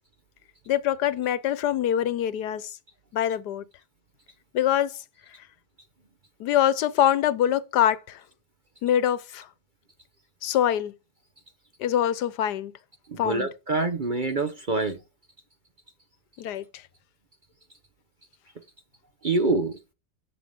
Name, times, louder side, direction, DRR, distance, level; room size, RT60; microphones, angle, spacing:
voice 1, 0.7-2.7 3.1-3.6 4.5-5.0 6.4-8.2 8.8-9.5 10.4-10.9 11.8-12.7 13.2-13.5 16.4-16.8, left 10 dB, 85° left, 1.4 m, -24 dB
voice 2, 13.1-15.0 19.2-19.8, right 3 dB, 40° right, 0.8 m, -26 dB
16.5 x 6.6 x 3.6 m
omnidirectional pair, 1.7 m